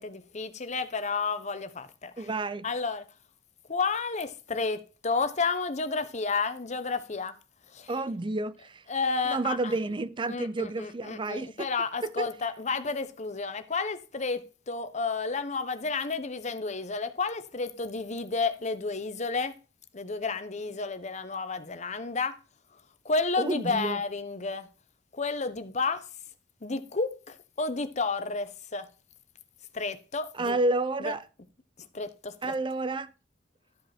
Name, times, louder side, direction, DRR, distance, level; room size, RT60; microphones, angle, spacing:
voice 1, 0.0-2.3 2.6-3.1 3.7-7.4 7.7-7.9 8.9-9.8 10.3-19.6 19.9-22.4 23.0-24.7 25.1-26.1 26.6-28.9 29.7-30.6 31.0-31.1 31.8-32.6, left 4 dB, 40° left, 0.9 m, -31 dB
voice 2, 2.2-2.6 7.9-8.8 9.3-11.7 12.0-12.3 23.4-24.0 30.4-31.2 32.4-33.1, right 2 dB, 25° right, 0.5 m, -30 dB
12.5 x 5.2 x 4.3 m
head